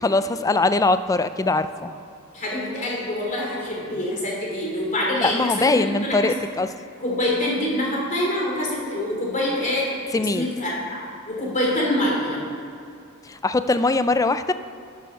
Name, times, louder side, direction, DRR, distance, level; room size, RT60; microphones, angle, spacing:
voice 1, 0.0-1.9 5.2-6.7 10.1-10.5 13.3-14.5, left 3 dB, 15° left, 12 dB, 0.3 m, -21 dB
voice 2, 2.3-6.3 7.0-9.9 10.3-11.0 11.3-12.4, left 1 dB, 35° left, -3 dB, 3.1 m, -25 dB
11.0 x 7.0 x 6.3 m, 2.5 s
head